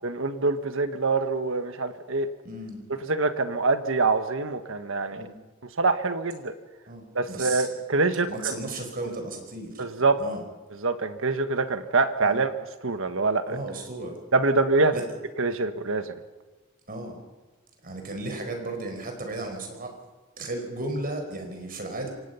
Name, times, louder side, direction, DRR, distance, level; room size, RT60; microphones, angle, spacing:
voice 1, 0.0-2.3 3.1-5.3 5.8-6.5 7.1-8.6 9.8-10.2 10.8-12.5 12.8-13.6 14.3-14.9 15.4-16.1, right 3 dB, 65° right, 9 dB, 1.5 m, -25 dB
voice 2, 2.4-2.9 5.1-5.4 6.9-7.7 8.3-9.8 10.2-10.4 12.2-12.4 13.5-14.1 14.9-15.0 16.9-17.2 17.8-20.0 20.4-22.1, right 2 dB, 45° right, 4 dB, 4.8 m, -34 dB
26.5 x 18.0 x 5.7 m, 1.3 s
head